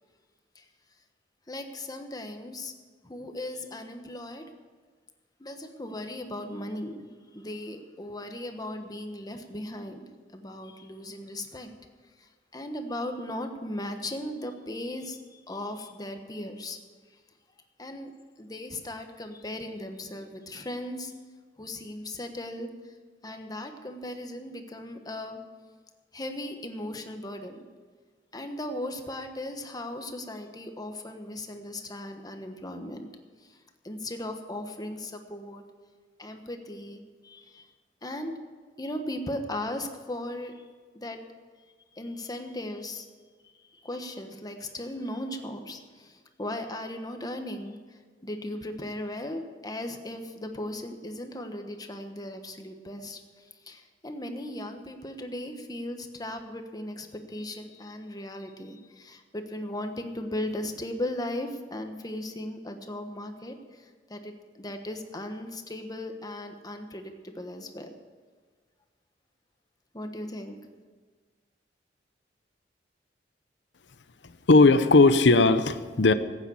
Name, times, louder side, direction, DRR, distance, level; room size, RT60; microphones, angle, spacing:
voice 1, 1.5-2.7 3.0-4.4 5.4-10.0 10.3-11.7 12.2-16.8 17.1-17.2 17.8-18.1 18.4-21.1 21.6-23.0 23.2-25.4 26.1-27.6 28.3-33.1 33.4-35.6 36.2-37.7 38.0-38.4 38.8-40.6 40.9-41.2 41.9-43.1 43.4-67.9 69.9-70.6, left 1 dB, 20° left, 6 dB, 1.3 m, -37 dB
voice 2, 74.2-76.1, left 3 dB, 85° left, 12 dB, 0.8 m, -18 dB
15.5 x 9.0 x 7.1 m, 1.5 s
head